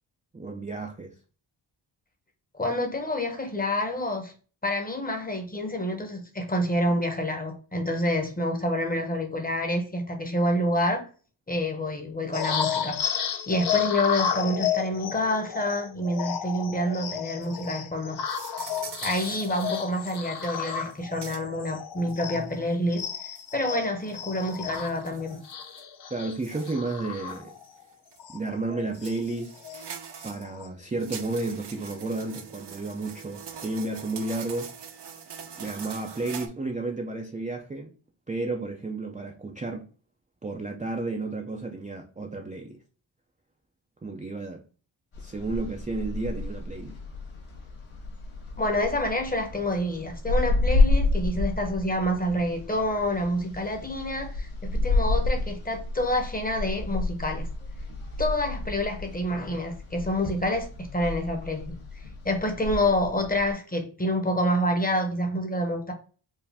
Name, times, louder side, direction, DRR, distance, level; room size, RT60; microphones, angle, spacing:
voice 1, 0.3-1.1 26.1-27.6 28.3-29.5 30.2-35.1 35.6-37.9 38.3-39.8 40.4-42.7 44.0-44.6 45.2-47.0, right 2 dB, 15° right, 0.4 m, -32 dB
voice 2, 2.5-4.3 4.6-11.1 11.5-13.0 13.5-18.2 19.0-23.1 23.5-25.4 48.6-57.5 58.2-61.8 62.2-65.9, left 1 dB, 20° left, 0.8 m, -28 dB
sound 1, 12.3-22.6 22.9-27.8 28.2-28.4 28.7-29.8 30.2-30.7, left 8 dB, 55° left, 0.5 m, -32 dB
sound 2, 17.4-17.7 18.3-20.5 20.8-20.9 21.2-21.4 22.1-22.2 23.0-23.5 24.1-25.8 26.4-26.7 27.3-27.7 28.1-28.2 28.9-30.4 30.9-36.5, right 7 dB, 55° right, 0.7 m, -43 dB
sound 3, 45.1-63.5, left 2 dB, 80° left, 1.6 m, -30 dB
4.6 x 2.5 x 3.4 m
wide cardioid pair, 160°, 48 cm